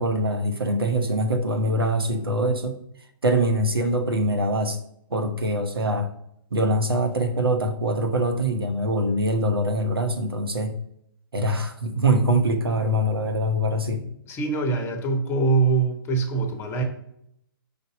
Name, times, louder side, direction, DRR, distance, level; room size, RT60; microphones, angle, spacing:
voice 1, 0.0-2.8 3.2-4.8 5.1-6.1 6.5-10.8 11.3-14.0, right 1 dB, 80° right, 6 dB, 0.9 m, -23 dB
voice 2, 14.3-16.8, right 4 dB, 20° left, 5 dB, 0.8 m, -23 dB
5.2 x 4.0 x 5.0 m, 0.73 s
figure-of-eight pair, 125°, 12 cm